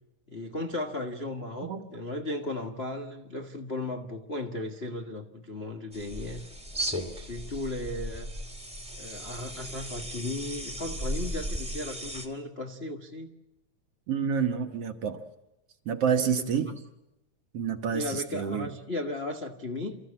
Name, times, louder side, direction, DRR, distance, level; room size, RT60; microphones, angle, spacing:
voice 1, 0.3-6.4 7.1-8.3 9.0-13.3 16.1-16.7 17.9-20.0, left 2 dB, 40° left, 2 dB, 0.9 m, -36 dB
sound 1, 5.9-12.3, equal, ahead, 1.8 m, -36 dB
voice 2, 14.1-15.2 15.9-16.7 17.5-18.7, right 7 dB, 60° right, 7 dB, 1.9 m, -28 dB
30.0 x 14.5 x 8.5 m, 0.96 s
omnidirectional pair, 3.6 m